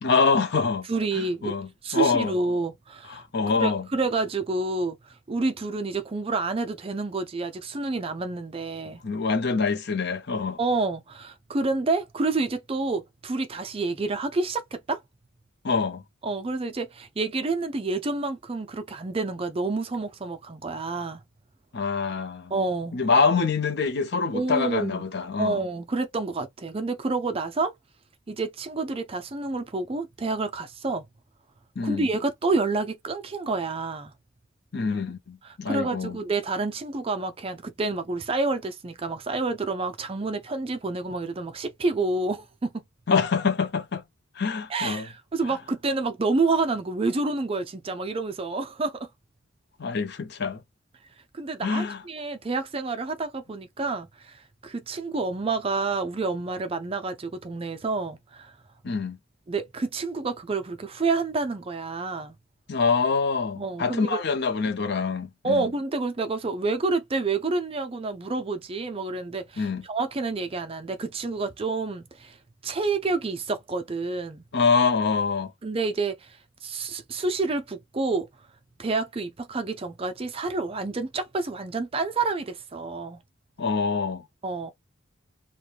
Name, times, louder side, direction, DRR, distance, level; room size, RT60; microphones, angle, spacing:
voice 1, 0.0-0.9 1.1-2.3 3.1-3.9 9.0-10.6 15.6-16.0 21.7-22.5 22.9-25.6 31.8-32.1 34.7-36.2 43.1-44.0 44.4-45.1 49.8-50.6 51.6-52.0 58.8-59.2 62.7-65.7 69.6-69.8 74.5-75.5 83.6-84.2, left 4 dB, 55° left, 0.6 m, -25 dB
voice 2, 0.9-1.5 1.8-3.2 3.6-9.0 10.6-15.0 16.2-21.2 22.5-22.9 24.3-25.0 25.4-27.7 28.3-31.1 31.8-34.1 35.4-42.8 44.7-49.1 51.3-58.5 59.5-62.4 63.6-64.2 65.4-72.4 72.6-74.4 75.6-78.3 78.8-83.2 84.4-84.7, right 3 dB, 30° right, 0.4 m, -28 dB
3.2 x 2.2 x 2.4 m
head